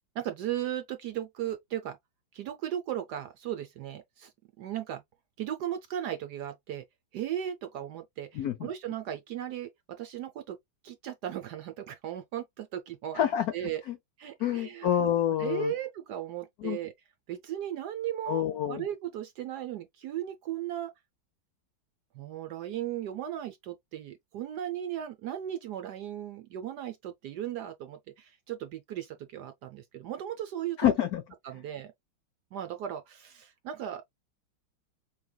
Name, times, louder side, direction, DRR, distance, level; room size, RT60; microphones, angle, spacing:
voice 1, 0.1-2.0 2.3-4.3 4.6-5.0 5.4-6.8 7.1-9.7 10.0-10.6 10.8-13.8 14.2-15.1 15.4-16.9 17.3-20.9 22.1-30.9 31.4-31.9 32.5-34.1, right 11 dB, 70° right, 1.0 m, -36 dB
voice 2, 8.3-8.7 13.2-13.5 13.9-14.0 14.4-15.7 16.6-16.8 18.3-18.8 30.8-31.2, left 10 dB, 85° left, 0.8 m, -27 dB
5.2 x 3.3 x 2.2 m
omnidirectional pair, 2.2 m